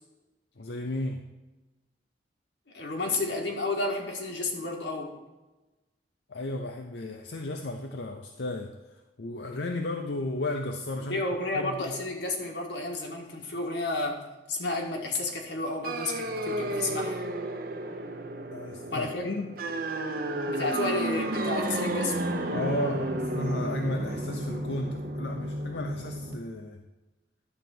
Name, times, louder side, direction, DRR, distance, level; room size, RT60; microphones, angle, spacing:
voice 1, 0.6-1.3 6.3-11.2 11.5-12.0 18.5-19.5 22.5-26.8, left 1 dB, 70° left, 4 dB, 0.7 m, -34 dB
voice 2, 2.7-5.2 11.1-14.2 14.5-17.2 18.9-19.2 20.5-22.2, left 2 dB, 90° left, 1 dB, 1.7 m, -31 dB
sound 1, 15.8-26.3, right 1 dB, 55° right, 0.8 m, -32 dB
11.0 x 4.0 x 7.7 m, 1.1 s
head